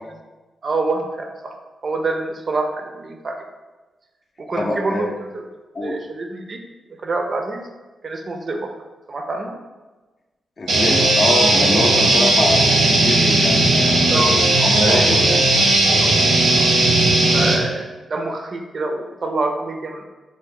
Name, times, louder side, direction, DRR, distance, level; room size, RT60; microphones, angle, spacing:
voice 1, 0.6-1.6 1.8-3.4 4.4-5.4 5.8-6.6 7.0-7.6 8.0-8.7 9.1-9.5 14.1-14.4 14.8-15.2 16.0-16.3 16.6-16.7 17.3-20.0, right 3 dB, 55° right, 3 dB, 0.4 m, -26 dB
voice 2, 4.5-5.1 5.7-6.0 10.6-14.1 14.6-15.4, left 2 dB, 50° left, 1 dB, 0.5 m, -24 dB
sound 1, 10.7-17.5, right 2 dB, 85° right, 0.7 m, -16 dB
3.2 x 2.1 x 3.6 m, 1.2 s
supercardioid pair, 50°, 0 cm